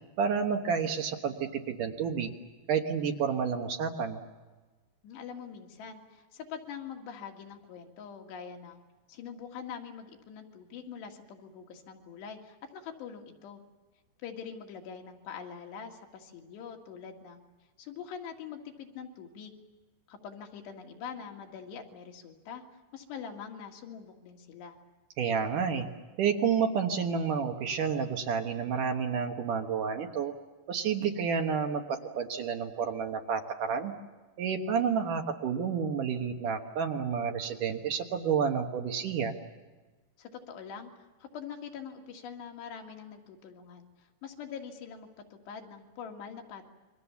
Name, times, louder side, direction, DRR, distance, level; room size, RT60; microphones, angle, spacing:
voice 1, 0.2-2.3 2.7-4.2 25.2-25.9 26.2-30.3 30.7-33.9 34.4-39.3, right 6 dB, 65° right, 4 dB, 2.4 m, -30 dB
voice 2, 5.0-8.8 9.1-13.6 14.2-17.4 17.8-19.5 20.1-24.8 40.2-46.6, left 7 dB, 90° left, 3 dB, 4.2 m, -44 dB
28.0 x 23.0 x 7.1 m, 1.3 s
omnidirectional pair, 4.8 m